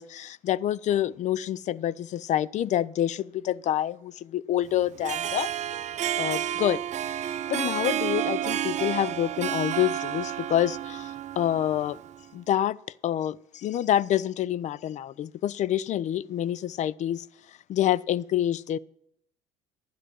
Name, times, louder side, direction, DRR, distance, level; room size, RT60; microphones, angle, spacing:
voice 1, 0.0-5.5 6.2-6.8 7.5-12.0 12.3-12.8 13.0-17.2 17.7-18.8, left 11 dB, 45° left, 21 dB, 0.5 m, -27 dB
Harp, 4.9-12.2, right 11 dB, 40° right, 0.7 m, -31 dB
12.0 x 9.4 x 6.3 m, 0.73 s
hypercardioid pair, 75°, 17 cm